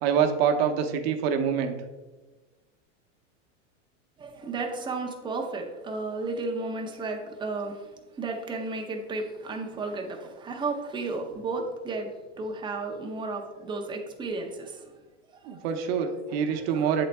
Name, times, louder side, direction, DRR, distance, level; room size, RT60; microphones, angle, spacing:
voice 1, 0.0-1.7 15.4-17.0, right 7 dB, 55° right, 6 dB, 0.8 m, -25 dB
voice 2, 4.2-7.9 8.2-12.1 12.4-14.9 15.3-15.7 16.5-17.0, right 3 dB, 15° right, 2 dB, 0.6 m, -33 dB
8.0 x 4.0 x 3.3 m, 1.2 s
supercardioid pair, 140°, 37 cm